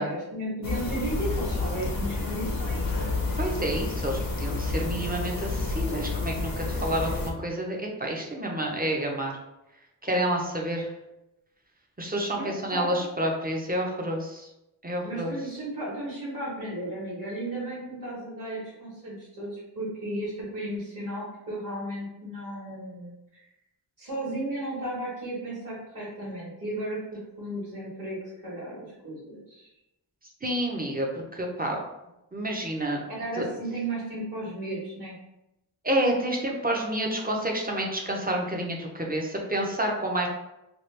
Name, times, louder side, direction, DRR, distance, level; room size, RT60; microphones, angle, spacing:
voice 1, 0.0-2.8 12.3-13.1 15.0-23.4 24.0-29.7 33.1-35.1, right 1 dB, 45° right, -7 dB, 1.3 m, -34 dB
sound 1, 0.6-7.3, left 3 dB, 50° left, 0.6 m, -30 dB
voice 2, 3.4-9.4 10.0-10.9 12.0-14.5 14.8-15.3 30.4-31.8 32.3-33.0 33.4-33.5 35.8-40.3, right 1 dB, 20° right, 0 dB, 0.6 m, -29 dB
2.9 x 2.3 x 3.2 m, 0.90 s
wide cardioid pair, 60°, 45 cm